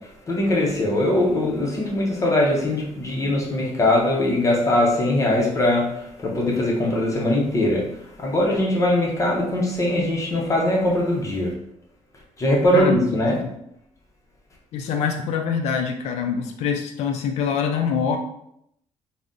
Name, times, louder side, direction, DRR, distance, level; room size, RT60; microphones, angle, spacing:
voice 1, 0.3-7.8 8.2-11.5 12.4-13.4, left 1 dB, 30° left, -2 dB, 0.6 m, -21 dB
voice 2, 14.7-18.2, left 6 dB, 75° left, 4 dB, 0.4 m, -24 dB
2.5 x 2.0 x 3.5 m, 0.75 s
cardioid pair, 145°, 11 cm